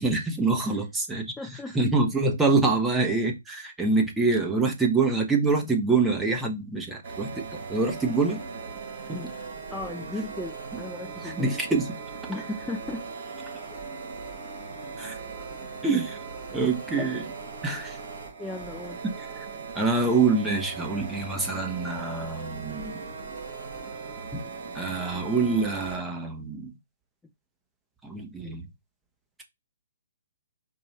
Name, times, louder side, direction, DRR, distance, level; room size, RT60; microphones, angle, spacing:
voice 1, 0.0-1.3 1.7-8.4 9.1-9.2 11.2-12.0 15.0-15.2 15.8-16.2 16.5-17.3 17.6-18.0 19.2-19.5 19.7-23.0 24.3-24.4 24.7-26.7 28.0-28.6, right 3 dB, 10° right, 0.9 m, -25 dB
voice 2, 1.3-1.7 9.1-9.3 9.7-11.5 12.3-13.1 18.4-19.0, left 2 dB, 5° left, 0.5 m, -36 dB
sound 1, 7.0-26.0, right 4 dB, 50° right, 2.6 m, -39 dB
4.7 x 2.6 x 3.1 m
hypercardioid pair, 135°, 0 cm